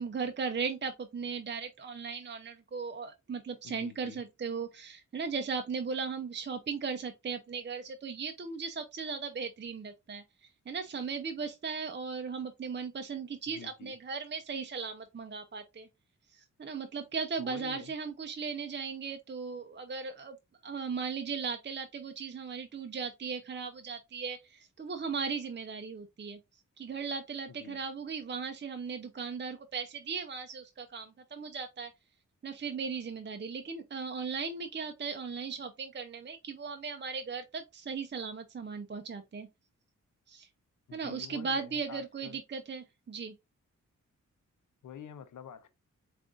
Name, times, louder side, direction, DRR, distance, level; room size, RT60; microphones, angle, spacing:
voice 1, 0.0-15.9 16.3-20.4 20.6-26.4 26.8-31.9 32.4-39.5 40.3-40.5 40.9-43.3, right 5 dB, 35° right, 0.6 m, -37 dB
voice 2, 3.6-4.2 13.5-13.9 17.4-17.9 27.5-27.8 40.9-42.4 44.8-45.7, left 8 dB, 70° left, 0.6 m, -48 dB
7.4 x 2.5 x 2.4 m
cardioid pair, 60°, 32 cm